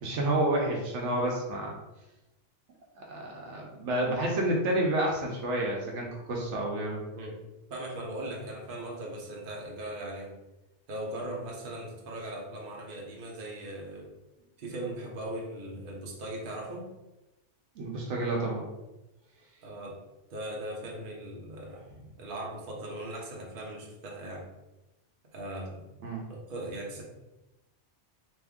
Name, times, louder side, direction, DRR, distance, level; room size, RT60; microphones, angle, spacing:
voice 1, 0.0-1.7 3.0-7.0 17.8-18.7 26.0-26.3, right 1 dB, 75° right, -1 dB, 1.1 m, -29 dB
voice 2, 7.7-10.3 10.9-14.1 14.6-16.9 19.6-20.0 20.3-21.9 22.2-24.5 25.3-25.9 26.3-27.0, right 1 dB, 50° right, -2 dB, 0.9 m, -39 dB
3.4 x 3.1 x 3.5 m, 0.99 s
omnidirectional pair, 1.2 m